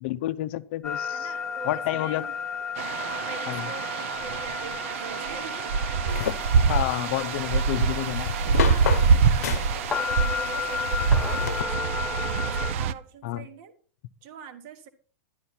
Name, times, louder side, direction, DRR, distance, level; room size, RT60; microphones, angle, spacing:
voice 1, 0.0-1.3 1.6-2.3 3.5-3.7 6.7-8.3 13.2-13.4, left 15 dB, 50° left, 13 dB, 0.6 m, -29 dB
sound 1, 0.8-12.7, left 6 dB, 10° left, 0.6 m, -34 dB
voice 2, 1.1-2.3 3.2-5.8 8.6-12.1 12.5-13.7 14.2-14.9, right 6 dB, 40° right, 9 dB, 1.4 m, -44 dB
sound 2, 2.8-12.9, right 6 dB, 55° right, 0.7 m, -25 dB
sound 3, 6.1-11.6, left 10 dB, 90° left, 0.8 m, -33 dB
11.5 x 11.0 x 4.3 m, 0.42 s
supercardioid pair, 165°, 8 cm